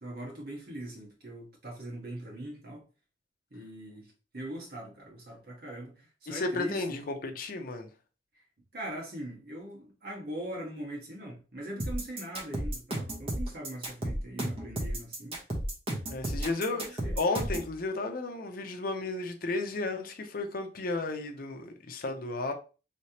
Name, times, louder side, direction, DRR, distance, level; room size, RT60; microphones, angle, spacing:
voice 1, 0.0-2.8 3.5-7.0 8.3-8.4 8.7-15.4 16.4-17.2, right 1 dB, 60° right, 1.5 m, -41 dB
voice 2, 6.3-7.9 16.1-16.9 17.2-22.5, left 3 dB, 55° left, 0.6 m, -33 dB
sound 1, 11.8-17.7, right 1 dB, 35° right, 1.1 m, -33 dB
3.2 x 3.2 x 2.8 m
head